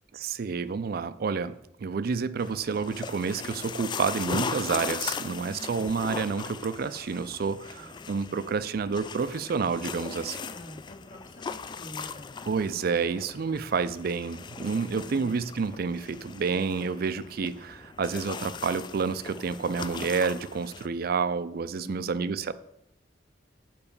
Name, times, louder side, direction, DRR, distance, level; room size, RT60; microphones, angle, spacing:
voice 1, 0.1-10.4 12.5-22.5, right 5 dB, 55° right, 14 dB, 0.4 m, -29 dB
sound 1, 2.4-20.9, left 5 dB, 25° left, 0.3 m, -39 dB
voice 2, 5.2-6.0 7.8-7.9 10.0-12.7 14.7-15.4 21.8-22.4, left 1 dB, 50° left, 1 dB, 1.7 m, -47 dB
7.0 x 5.3 x 5.4 m, 0.81 s
head